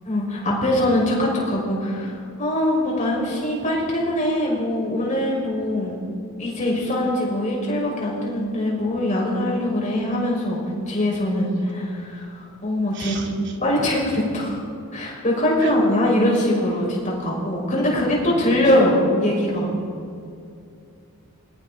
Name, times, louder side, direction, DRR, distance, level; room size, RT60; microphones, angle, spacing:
voice 1, 0.0-6.0 6.4-10.6 10.9-13.2 13.6-14.6 14.9-19.7, left 1 dB, 35° left, -3 dB, 6.0 m, -22 dB
voice 2, 11.4-11.7 12.9-13.6 15.6-16.1 18.3-19.0, right 4 dB, 55° right, 1 dB, 2.9 m, -37 dB
27.0 x 22.5 x 4.3 m, 2.5 s
head